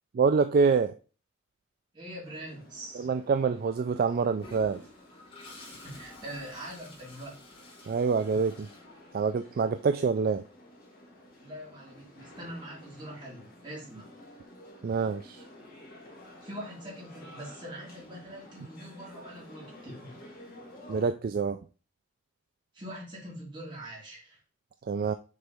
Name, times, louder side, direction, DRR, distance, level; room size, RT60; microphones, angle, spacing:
voice 1, 0.1-0.9 3.0-4.8 7.9-8.7 9.1-10.4 14.8-15.4 20.9-21.6 24.9-25.1, right 5 dB, 45° right, 9 dB, 0.3 m, -26 dB
voice 2, 1.9-3.1 5.8-7.3 11.4-14.1 16.4-20.2 22.7-24.4, right 1 dB, 25° right, -6 dB, 3.1 m, -43 dB
sound 1, 2.2-21.1, left 1 dB, 45° left, 1.5 m, -52 dB
Toilet flush, 4.4-9.5, left 2 dB, 25° left, 1.6 m, -51 dB
6.7 x 4.1 x 3.5 m, 0.35 s
head